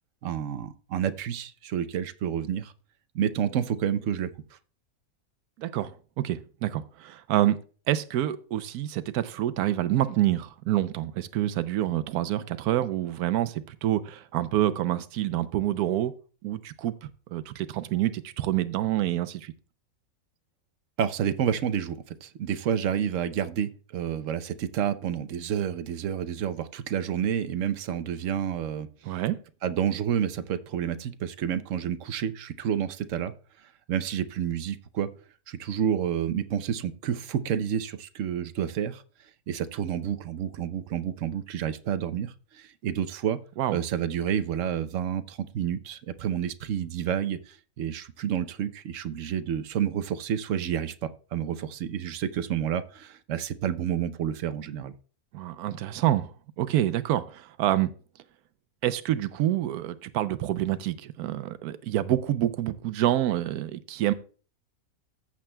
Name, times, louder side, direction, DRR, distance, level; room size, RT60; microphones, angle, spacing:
voice 1, 0.2-2.7 3.1-4.3 21.0-28.9 29.6-33.3 33.9-35.1 35.5-39.0 39.5-43.4 43.7-54.9, right 9 dB, 65° right, 0.9 m, -29 dB
voice 2, 5.6-5.9 6.2-7.6 7.9-16.1 16.4-16.9 17.3-19.5 29.1-29.4 43.6-43.8 55.3-56.3 56.6-57.9 58.8-64.1, right 13 dB, 90° right, 1.1 m, -27 dB
14.5 x 7.3 x 2.2 m
omnidirectional pair, 1.6 m